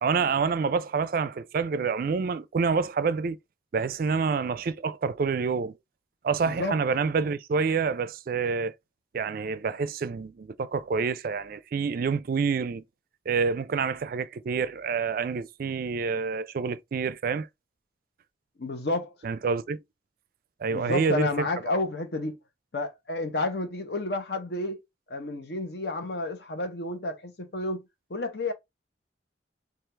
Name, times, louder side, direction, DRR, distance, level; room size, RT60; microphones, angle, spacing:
voice 1, 0.0-3.4 3.7-5.7 6.2-8.7 9.1-12.8 13.3-17.5 19.2-19.8 20.6-21.5, right 5 dB, 50° right, 0.3 m, -27 dB
voice 2, 6.4-6.8 18.6-19.1 20.7-22.4 22.7-24.8 25.1-28.5, left 2 dB, 60° left, 0.9 m, -31 dB
4.5 x 2.4 x 3.3 m
head